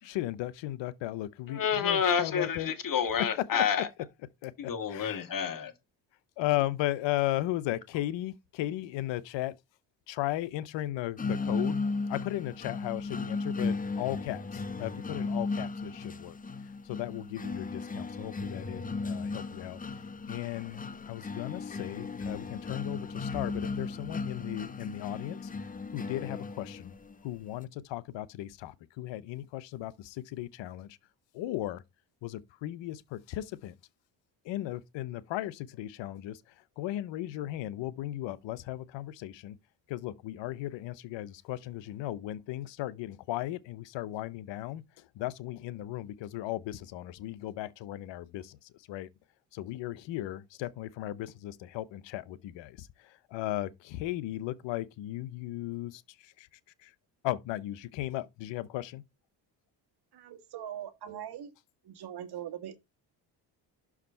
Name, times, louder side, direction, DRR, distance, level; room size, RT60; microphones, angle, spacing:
voice 1, 0.0-2.7 4.4-4.5 4.9-5.2 6.4-9.6 10.1-11.8 12.1-16.4 16.8-19.8 20.3-25.5 25.9-26.9 27.2-31.0 31.3-31.8 32.2-33.7 34.4-39.6 39.9-49.1 49.5-56.5 56.8-56.9 57.2-59.0, left 15 dB, 75° left, 0.8 m, -36 dB
voice 2, 1.5-3.9 4.6-5.7, left 7 dB, 45° left, 1.6 m, -29 dB
sound 1, 11.2-27.1, left 4 dB, 20° left, 0.8 m, -36 dB
voice 3, 60.1-61.5 61.8-62.8, right 10 dB, 60° right, 1.6 m, -41 dB
6.3 x 4.9 x 5.4 m
cardioid pair, 90°, 45 cm